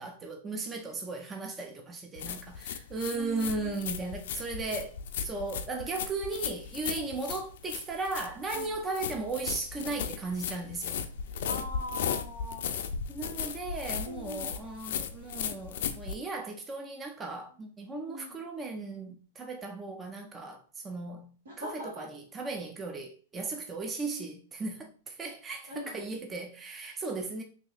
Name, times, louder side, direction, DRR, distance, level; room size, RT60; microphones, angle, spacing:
voice 1, 0.0-5.0 5.2-11.0 13.1-21.3 21.6-27.4, right 3 dB, 15° right, 0.4 m, -36 dB
sound 1, 2.2-16.2, left 8 dB, 60° left, 0.4 m, -36 dB
voice 2, 3.1-3.8 7.0-7.1 8.5-8.7 11.4-12.7 14.0-14.6 17.9-18.4 21.5-22.1 25.7-26.0, equal, 85° right, 2.0 m, -41 dB
3.1 x 2.9 x 3.8 m
supercardioid pair, 160°, 0 cm